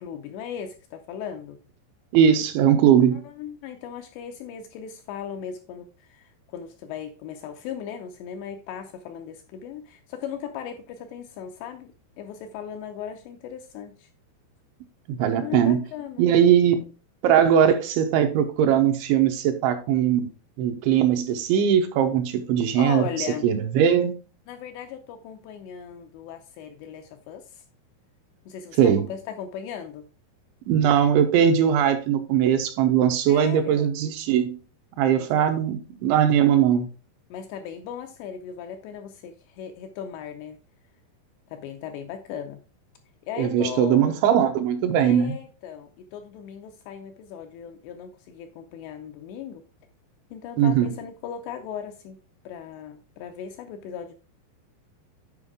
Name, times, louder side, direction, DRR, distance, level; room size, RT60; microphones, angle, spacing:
voice 1, 0.0-1.6 3.1-11.9 12.2-14.1 15.4-16.3 22.8-23.5 24.5-27.6 28.5-30.1 33.3-33.9 35.2-35.6 37.3-40.6 41.5-42.6 43.3-44.1 45.0-49.6 50.3-52.2 52.5-54.1, left 8 dB, 80° left, 5 dB, 2.6 m, -37 dB
voice 2, 2.1-3.2 15.1-15.8 16.2-16.8 17.2-20.3 20.6-24.2 28.8-29.1 30.7-34.6 35.0-36.9 43.4-45.3 50.6-50.9, right 9 dB, 80° right, 6 dB, 3.1 m, -20 dB
9.9 x 5.0 x 3.6 m, 0.34 s
omnidirectional pair, 5.5 m